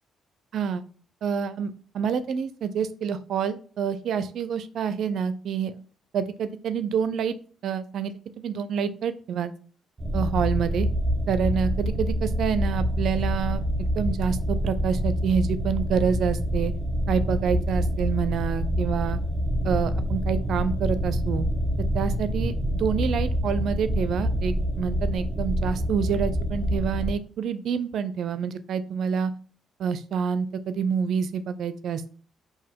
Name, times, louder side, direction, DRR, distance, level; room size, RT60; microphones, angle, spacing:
voice 1, 0.5-0.8 1.2-5.7 6.1-7.4 7.6-9.5 10.1-10.9 11.3-16.7 17.1-19.2 19.6-21.5 21.9-29.3 29.8-32.1, right 7 dB, 70° right, 13 dB, 0.4 m, -27 dB
sound 1, 10.0-27.2, equal, 15° right, 1.0 m, -26 dB
4.0 x 2.6 x 4.5 m, 0.42 s
cardioid pair, 90°, 0 cm